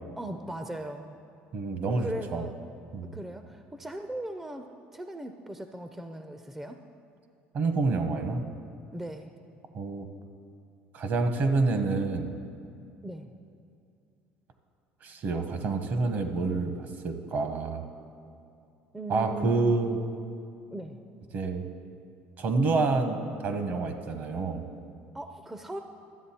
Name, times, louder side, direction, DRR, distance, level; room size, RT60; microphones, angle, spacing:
voice 1, 0.2-1.1 2.0-2.6 3.1-4.7 4.9-6.8 8.9-9.3 13.0-13.3 18.9-19.7 20.7-21.0 25.1-25.8, right 1 dB, 10° right, 6 dB, 0.4 m, -38 dB
voice 2, 1.5-2.5 2.9-3.1 7.5-8.4 9.7-10.1 10.9-12.4 15.0-17.8 19.1-20.0 21.3-21.6 22.4-23.2 23.4-24.6, right 3 dB, 50° right, 7 dB, 1.0 m, -28 dB
12.5 x 7.6 x 4.3 m, 2.5 s
cardioid pair, 115°, 4 cm